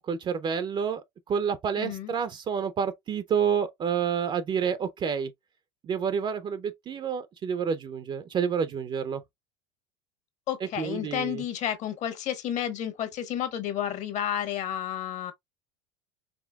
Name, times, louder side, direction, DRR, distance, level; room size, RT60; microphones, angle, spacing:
voice 1, 0.1-1.0 1.3-5.3 5.8-9.2 10.8-11.4, right 7 dB, 30° right, 0.5 m, -29 dB
voice 2, 1.8-2.1 10.5-15.3, left 10 dB, 50° left, 1.2 m, -31 dB
5.1 x 3.2 x 2.3 m
supercardioid pair, 100°, 15 cm